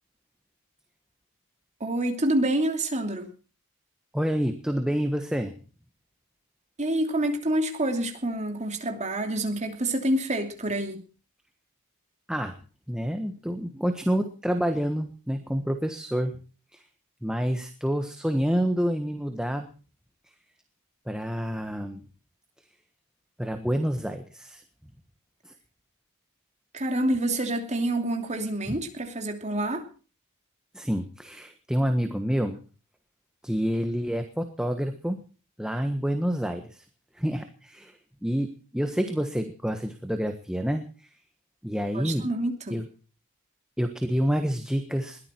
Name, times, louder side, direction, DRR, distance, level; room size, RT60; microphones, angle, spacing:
voice 1, 1.8-3.3 6.8-11.0 26.7-29.9 41.9-42.8, right 1 dB, 30° right, 2.9 m, -27 dB
voice 2, 4.1-5.5 12.3-12.5 12.9-16.4 16.7-16.8 17.2-19.7 21.1-22.0 23.4-24.6 25.4-25.5 28.7-28.8 30.7-32.6 33.4-35.2 35.6-36.8 37.2-37.9 38.2-40.8 41.6-42.3 42.7-42.8 43.8-45.3, equal, 5° right, 1.3 m, -28 dB
21.0 x 14.5 x 4.5 m
head